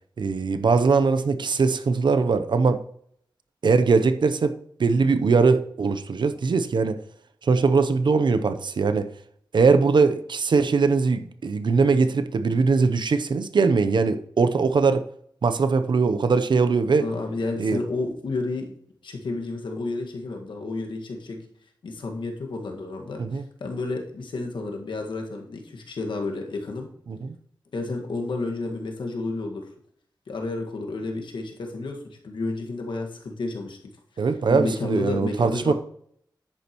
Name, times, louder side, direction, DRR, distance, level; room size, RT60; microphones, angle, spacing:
voice 1, 0.2-2.8 3.6-7.0 7.4-9.1 9.5-15.0 15.4-17.1 17.6-17.8 23.2-23.4 27.1-27.4 34.2-35.7, right 4 dB, 70° right, 0.7 m, -21 dB
voice 2, 17.0-18.7 19.0-21.4 21.8-26.9 27.7-29.6 30.3-32.0 32.2-33.8 34.2-34.3 34.5-35.7, left 3 dB, 80° left, 1.8 m, -31 dB
10.0 x 8.6 x 3.1 m
cardioid pair, 60°, 8 cm